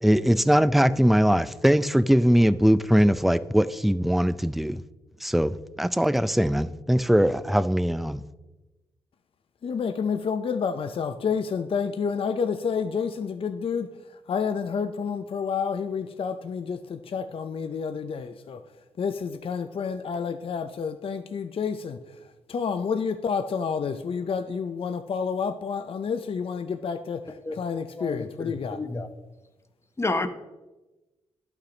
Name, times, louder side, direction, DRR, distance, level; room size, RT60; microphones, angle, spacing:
voice 1, 0.0-4.8 5.2-8.2, equal, ahead, 15 dB, 0.4 m, -21 dB
voice 2, 9.6-18.6 19.0-22.2 22.5-28.8, left 6 dB, 55° left, 9 dB, 0.6 m, -29 dB
voice 3, 28.0-29.1 30.0-30.3, left 2 dB, 25° left, 9 dB, 0.9 m, -30 dB
11.0 x 5.8 x 3.9 m, 1.1 s
supercardioid pair, 55°, 11 cm